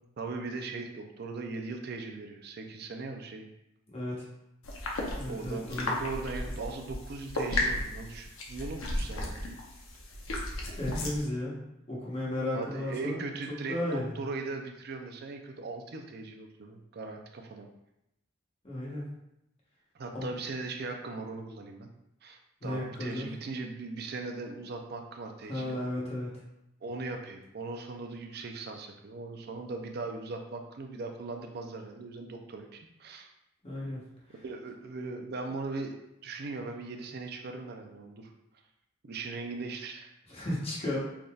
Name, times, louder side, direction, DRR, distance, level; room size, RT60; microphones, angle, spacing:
voice 1, 0.2-3.5 5.3-9.5 12.5-17.7 19.9-21.9 22.2-25.8 26.8-33.3 34.4-36.0 36.2-38.3 39.0-40.1, right 3 dB, 50° right, 4 dB, 0.4 m, -39 dB
voice 2, 3.9-4.3 5.2-6.0 10.8-11.6 11.9-13.2 13.7-14.1 18.6-19.0 20.1-20.3 22.6-23.3 25.5-26.4 33.6-34.4 40.3-41.0, left 1 dB, 30° left, -6 dB, 1.0 m, -34 dB
sound 1, 4.6-11.2, left 1 dB, 80° left, 0.7 m, -34 dB
3.9 x 3.5 x 2.3 m, 0.85 s
head